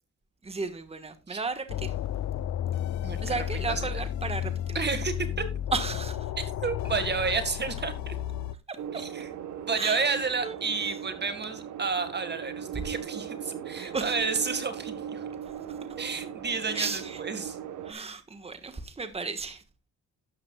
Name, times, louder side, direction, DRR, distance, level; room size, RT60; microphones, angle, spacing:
voice 1, 0.4-1.9 3.2-4.9 5.7-6.3 8.7-9.0 9.7-10.1 10.4-10.9 12.7-12.8 13.8-14.3 15.4-15.8 16.7-17.2 17.8-19.6, right 4 dB, 20° right, 1.5 m, -34 dB
sound 1, 1.7-8.5, left 10 dB, 65° left, 0.8 m, -32 dB
voice 2, 3.0-3.3 3.7-3.9 4.8-5.5 6.4-8.1 9.2-9.3 9.7-15.2 16.0-17.6 17.9-18.1, right 5 dB, 35° right, 1.9 m, -31 dB
sound 2, 8.8-17.9, right 8 dB, 80° right, 1.5 m, -39 dB
12.5 x 9.8 x 2.4 m
cardioid pair, 90°, 30 cm